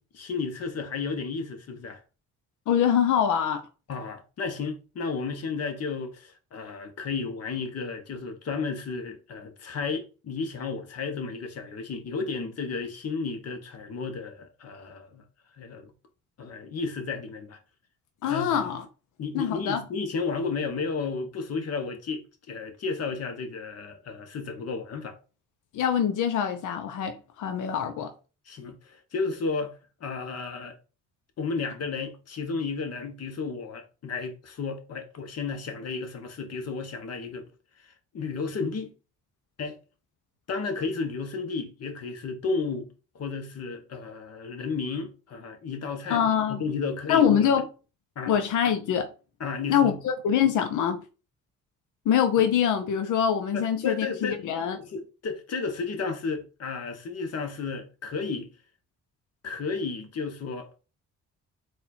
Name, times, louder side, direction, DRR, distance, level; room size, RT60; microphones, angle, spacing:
voice 1, 0.0-2.0 3.9-15.2 15.6-15.9 16.4-17.6 18.3-18.7 19.2-25.2 28.5-30.8 31.4-37.5 37.8-38.9 39.6-39.8 40.5-47.5 48.1-48.4 49.4-50.0 53.5-54.5 54.8-58.5 59.4-60.8, left 4 dB, 55° left, 1.2 m, -33 dB
voice 2, 2.7-3.6 18.2-18.8 19.3-19.8 25.7-28.1 46.1-46.6 47.1-47.6 48.3-49.1 49.7-51.0 52.1-54.8, left 8 dB, 80° left, 0.8 m, -24 dB
4.2 x 2.5 x 4.2 m
cardioid pair, 90°, 30 cm